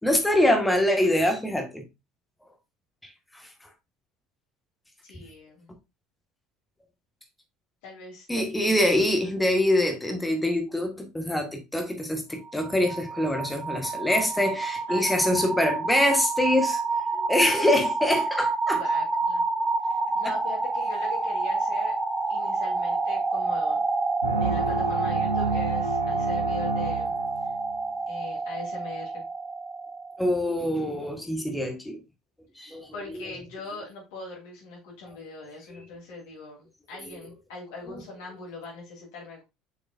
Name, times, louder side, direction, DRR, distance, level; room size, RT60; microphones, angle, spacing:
voice 1, 0.0-1.8 8.3-16.8 17.2-18.8 30.2-32.0 32.6-33.2 35.7-35.8 37.1-37.3 37.9-38.0, left 1 dB, 10° left, 1.7 m, -24 dB
voice 2, 5.1-5.7 7.8-8.8 14.9-15.1 18.7-19.4 19.8-21.9 22.3-23.9 24.4-27.1 28.1-29.2 32.9-39.4, left 3 dB, 60° left, 3.4 m, -41 dB
sound 1, 12.5-30.3, right 3 dB, 15° right, 0.9 m, -28 dB
sound 2, 24.2-27.8, right 3 dB, 85° right, 1.1 m, -30 dB
7.0 x 6.2 x 2.6 m
figure-of-eight pair, 65°, 0 cm